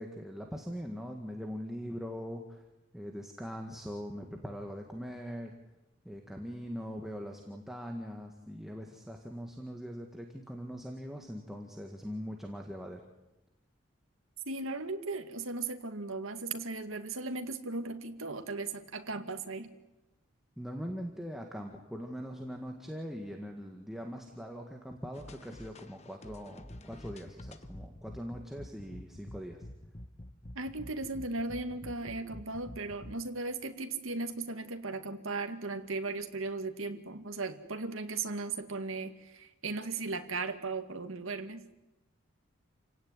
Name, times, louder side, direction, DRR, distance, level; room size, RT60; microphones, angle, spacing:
voice 1, 0.0-2.6 2.9-5.6 6.0-13.0 20.6-29.7, equal, ahead, 2 dB, 1.8 m, -41 dB
voice 2, 14.5-19.7 30.6-41.7, right 3 dB, 75° right, 7 dB, 2.1 m, -37 dB
sound 1, 25.1-33.2, left 1 dB, 30° left, 1.1 m, -48 dB
29.0 x 17.0 x 9.8 m, 0.98 s
head